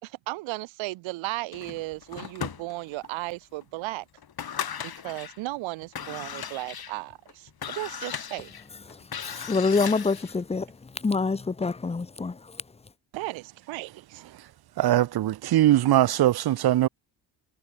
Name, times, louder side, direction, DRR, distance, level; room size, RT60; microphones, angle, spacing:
voice 1, 0.0-4.1 4.8-8.5 13.2-14.2, right 20 dB, 90° right, 2.0 m, -35 dB
sound 1, 1.5-3.1 3.6-3.7 4.2-5.4 5.8-10.4, left 8 dB, 55° left, 3.3 m, -37 dB
voice 2, 9.2-10.7 11.0-12.4, left 4 dB, 15° left, 0.7 m, -26 dB
voice 3, 14.8-16.9, right 13 dB, 55° right, 0.8 m, -21 dB
supercardioid pair, 60°, 45 cm